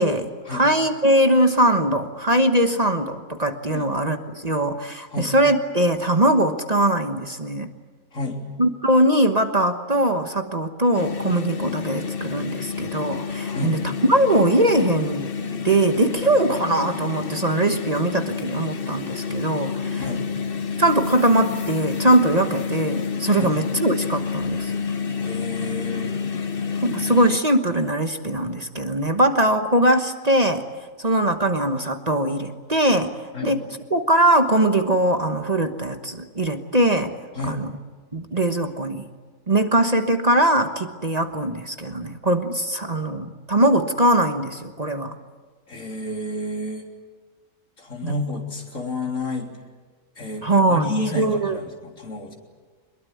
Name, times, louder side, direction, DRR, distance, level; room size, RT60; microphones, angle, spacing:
voice 1, 0.0-7.7 8.6-13.8 14.1-15.3 15.6-20.0 20.8-24.7 26.8-30.7 31.0-33.1 33.4-33.6 33.9-37.1 37.4-37.7 38.1-39.0 39.5-45.1 48.0-48.1 50.4-50.9 51.2-51.6, right 1 dB, 30° right, 7 dB, 1.3 m, -21 dB
voice 2, 8.1-8.4 13.5-13.8 20.0-20.2 23.4-23.5 25.2-26.3 33.3-33.5 37.3-37.6 45.7-46.9 47.8-49.5 50.2-52.3, left 1 dB, 70° left, 1 dB, 4.0 m, -30 dB
sound 1, 10.9-27.4, left 6 dB, 45° left, 1.2 m, -29 dB
24.0 x 22.0 x 9.5 m, 1.4 s
omnidirectional pair, 1.4 m